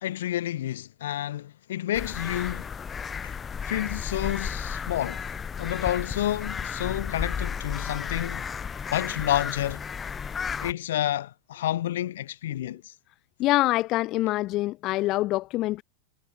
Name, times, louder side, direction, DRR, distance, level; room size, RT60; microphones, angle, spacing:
voice 1, 0.0-2.7 3.2-3.4 3.6-5.2 5.6-8.4 8.9-9.8 10.6-12.9, left 12 dB, 85° left, 1.6 m, -29 dB
sound 1, 1.9-10.7, left 6 dB, 15° left, 1.4 m, -33 dB
voice 2, 13.4-15.8, left 17 dB, 40° left, 0.6 m, -25 dB
supercardioid pair, 150°, 0 cm